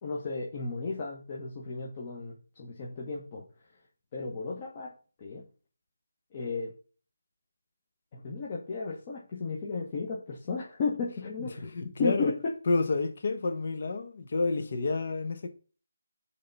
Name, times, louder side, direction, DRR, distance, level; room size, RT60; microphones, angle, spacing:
voice 1, 0.0-3.4 4.1-4.9 5.2-5.4 6.3-6.7 8.1-11.7 12.0-12.5, left 4 dB, 25° left, 1.1 m, -34 dB
voice 2, 11.6-12.3 12.7-15.5, left 3 dB, 45° left, 1.1 m, -29 dB
6.5 x 3.4 x 5.4 m
figure-of-eight pair, 170°, 0 cm